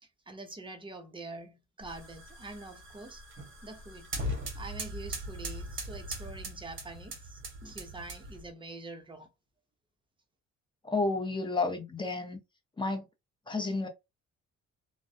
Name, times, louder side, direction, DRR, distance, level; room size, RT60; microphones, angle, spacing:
voice 1, 0.0-3.2 3.6-4.1 4.5-9.3, right 2 dB, 15° right, 0.6 m, -45 dB
sound 1, 1.8-8.5, equal, 40° right, 1.0 m, -40 dB
voice 2, 10.8-12.4 12.8-13.0 13.5-13.9, left 3 dB, 15° left, 0.7 m, -31 dB
2.2 x 2.1 x 2.7 m
cardioid pair, 90°, 30 cm